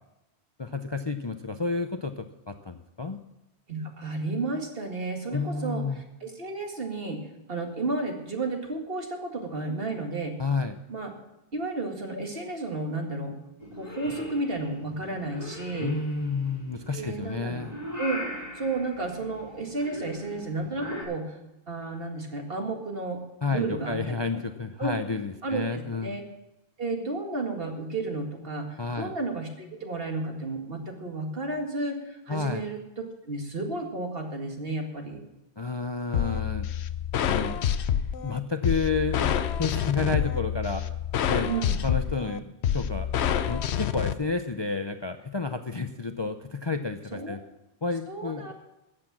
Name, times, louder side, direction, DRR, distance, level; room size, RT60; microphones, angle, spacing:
voice 1, 0.6-3.2 5.3-6.0 10.4-10.8 15.8-17.7 23.4-26.2 28.8-29.1 32.3-32.7 35.6-36.7 37.3-37.7 38.2-39.3 39.6-40.8 41.3-41.5 41.8-42.4 42.7-43.1 43.5-47.4 47.8-48.5, left 4 dB, 30° left, 7 dB, 0.5 m, -30 dB
voice 2, 3.7-7.2 7.5-10.4 10.9-11.1 11.5-13.3 13.8-15.9 16.9-17.7 18.0-18.2 18.6-21.4 21.7-23.2 23.5-24.2 24.8-24.9 25.4-26.2 26.8-32.8 33.2-35.2 41.5-41.8 47.1-47.4 48.1-48.5, right 3 dB, 60° right, 3 dB, 2.2 m, -32 dB
Purr / Meow, 13.6-21.0, left 1 dB, 40° right, 4.6 m, -40 dB
sound 1, 36.1-44.1, left 9 dB, 75° left, 0.9 m, -27 dB
14.0 x 8.5 x 7.4 m, 0.93 s
omnidirectional pair, 1.1 m